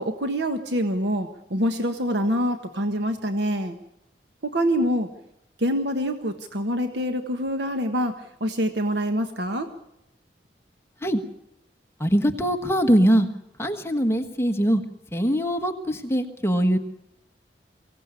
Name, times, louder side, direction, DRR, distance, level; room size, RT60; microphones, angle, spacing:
voice 1, 0.0-3.8 4.4-5.1 5.6-9.7, equal, 80° right, 7 dB, 1.5 m, -25 dB
voice 2, 12.0-13.3 13.6-14.8 15.1-16.8, equal, 15° left, 4 dB, 1.4 m, -22 dB
23.0 x 17.0 x 8.4 m, 0.80 s
head